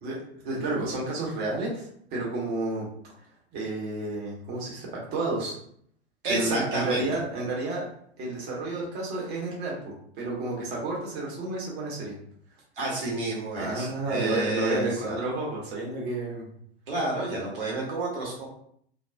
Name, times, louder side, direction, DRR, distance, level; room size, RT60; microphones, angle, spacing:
voice 1, 0.0-2.9 3.5-5.5 6.3-7.8 8.2-12.2 13.6-16.5, right 2 dB, 30° right, -4 dB, 1.0 m, -31 dB
voice 2, 6.2-7.0 12.8-15.2 16.9-18.4, right 2 dB, 55° right, -4 dB, 0.9 m, -30 dB
2.5 x 2.2 x 2.3 m, 0.65 s
figure-of-eight pair, 95°, 32 cm